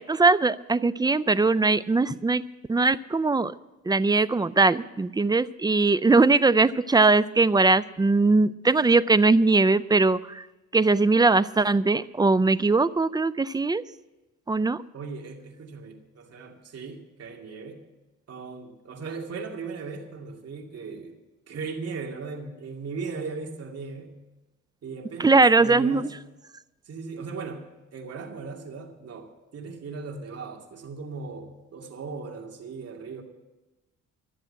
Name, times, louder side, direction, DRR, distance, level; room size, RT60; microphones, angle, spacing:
voice 1, 0.0-2.4 2.7-3.5 3.9-10.4 10.7-13.8 14.5-14.8 25.2-26.1, right 3 dB, 15° right, 17 dB, 0.4 m, -21 dB
voice 2, 14.9-17.8 18.3-21.2 21.5-24.2 24.8-26.1 26.9-33.2, right 4 dB, 55° right, 2 dB, 2.4 m, -38 dB
13.5 x 7.7 x 9.8 m, 1.1 s
cardioid pair, 90°, 30 cm